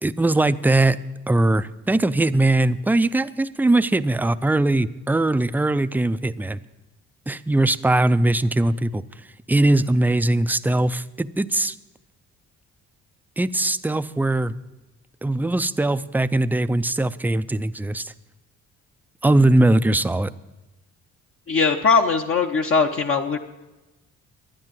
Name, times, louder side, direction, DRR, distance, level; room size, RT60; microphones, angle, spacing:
voice 1, 0.0-1.0 1.3-6.6 7.3-9.0 9.5-11.8 13.4-14.5 15.2-18.1 19.2-20.3, right 2 dB, 5° right, 14 dB, 0.4 m, -20 dB
voice 2, 21.5-23.4, left 4 dB, 45° left, 3 dB, 0.8 m, -20 dB
12.0 x 9.8 x 7.4 m, 1.1 s
cardioid pair, 90°, 30 cm